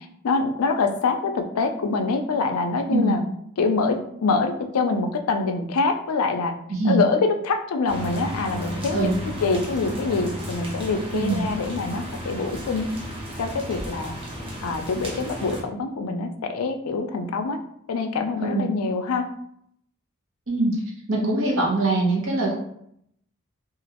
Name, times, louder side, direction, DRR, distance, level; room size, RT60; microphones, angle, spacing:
voice 1, 0.2-3.2 3.6-6.5 6.8-12.9 13.4-14.1 14.6-17.6 17.9-19.2, left 4 dB, 75° left, 5 dB, 0.4 m, -25 dB
voice 2, 6.7-7.1 8.9-9.2 11.1-11.4 18.4-18.7 20.5-20.8 21.1-22.5, right 2 dB, 60° right, -2 dB, 0.9 m, -22 dB
sound 1, 7.9-15.6, equal, 25° right, 0.7 m, -34 dB
3.0 x 2.4 x 2.8 m, 0.72 s
head